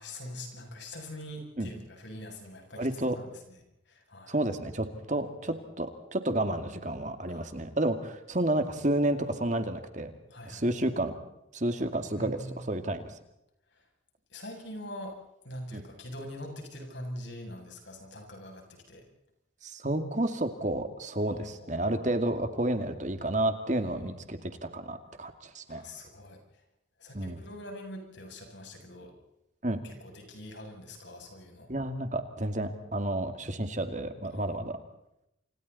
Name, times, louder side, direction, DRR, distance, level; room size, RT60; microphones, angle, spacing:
voice 1, 0.0-3.6 3.9-4.4 7.3-7.6 10.3-10.7 12.2-12.6 13.7-13.8 14.3-15.2 15.4-19.0 21.2-21.8 23.8-24.2 25.7-26.4 27.0-29.1 29.8-31.7 34.3-34.6, left 1 dB, 65° left, 2 dB, 7.8 m, -43 dB
voice 2, 2.8-3.2 4.3-10.1 10.5-11.2 11.5-13.2 15.7-15.8 19.6-25.8 27.1-27.4 29.6-29.8 31.7-34.8, right 1 dB, 40° right, 7 dB, 2.3 m, -31 dB
29.5 x 27.5 x 4.2 m, 0.83 s
head